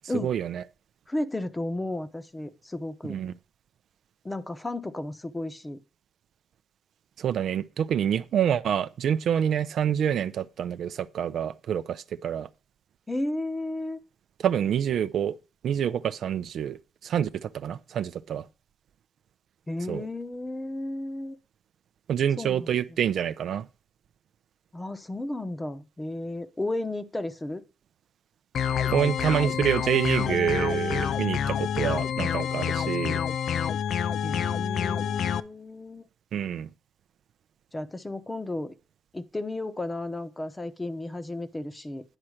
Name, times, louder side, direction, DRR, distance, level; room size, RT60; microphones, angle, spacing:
voice 1, 0.2-0.6 3.1-3.3 7.2-12.5 14.4-15.3 15.6-18.4 19.9-20.0 22.1-23.7 28.9-33.2 36.3-36.7, right 9 dB, 65° right, 0.5 m, -27 dB
voice 2, 1.1-3.2 4.2-5.8 13.1-14.0 19.7-21.4 22.4-23.0 24.7-27.6 34.2-36.0 37.7-38.7 39.1-42.0, left 1 dB, 15° left, 0.9 m, -33 dB
sound 1, 28.5-35.4, left 8 dB, 60° left, 0.5 m, -28 dB
9.9 x 4.4 x 6.4 m
cardioid pair, 90°, 0 cm